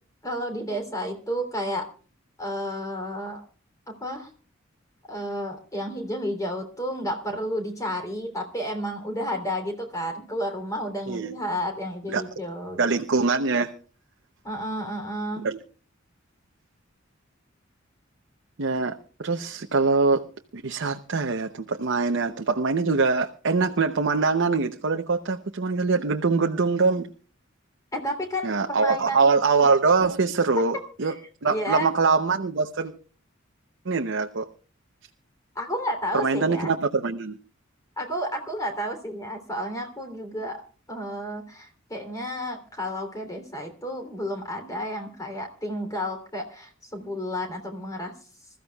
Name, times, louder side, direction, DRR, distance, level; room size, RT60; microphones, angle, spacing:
voice 1, 0.2-1.9 2.4-3.4 3.9-4.3 5.1-12.9 14.4-15.4 27.9-29.4 30.6-31.1 31.5-31.9 35.5-36.7 38.0-40.6 40.9-48.1, equal, 20° left, 4 dB, 3.2 m, -31 dB
voice 2, 11.1-11.4 12.1-12.2 12.8-13.7 15.4-15.6 18.6-20.3 20.5-27.1 28.4-31.1 31.4-32.9 33.8-34.5 36.1-37.4, right 4 dB, 65° right, 5 dB, 0.8 m, -23 dB
26.0 x 14.0 x 2.3 m, 0.38 s
head